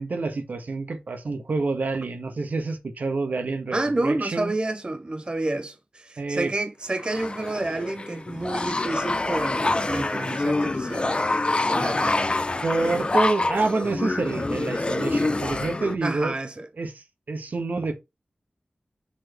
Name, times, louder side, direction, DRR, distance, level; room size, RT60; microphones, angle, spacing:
voice 1, 0.0-4.5 6.2-6.5 12.6-16.4 16.8-17.9, right 3 dB, 80° right, 1.6 m, -27 dB
voice 2, 3.7-12.1 16.0-16.7, right 2 dB, 35° right, 0.6 m, -29 dB
sound 1, 7.0-15.9, left 2 dB, 40° left, 0.8 m, -26 dB
6.2 x 4.2 x 4.6 m
wide cardioid pair, 80°, 3 cm